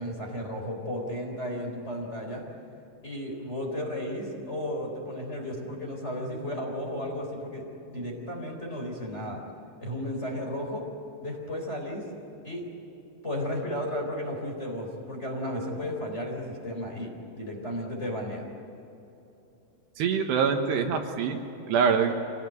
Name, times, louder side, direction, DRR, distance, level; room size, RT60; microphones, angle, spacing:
voice 1, 0.0-2.4 3.0-9.4 9.8-10.9 11.2-12.1 12.4-12.6 13.2-18.5, equal, 15° left, 0 dB, 3.6 m, -34 dB
voice 2, 20.0-21.4 21.7-22.1, right 6 dB, 75° right, 4 dB, 3.4 m, -24 dB
26.0 x 19.5 x 9.2 m, 3.0 s
omnidirectional pair, 5.2 m